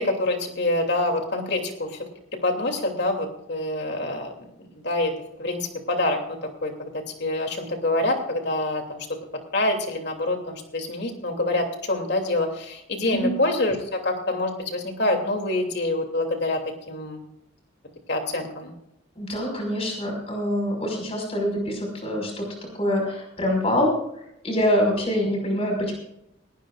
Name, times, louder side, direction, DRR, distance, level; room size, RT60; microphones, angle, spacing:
voice 1, 0.0-2.0 2.4-4.5 4.8-5.1 5.4-9.0 9.5-16.6 16.9-17.2 18.1-18.7, left 2 dB, 60° left, 3 dB, 2.9 m, -26 dB
voice 2, 19.2-22.5 22.7-23.9 24.4-25.9, equal, 30° left, 1 dB, 5.5 m, -25 dB
19.0 x 18.0 x 2.5 m, 0.77 s
head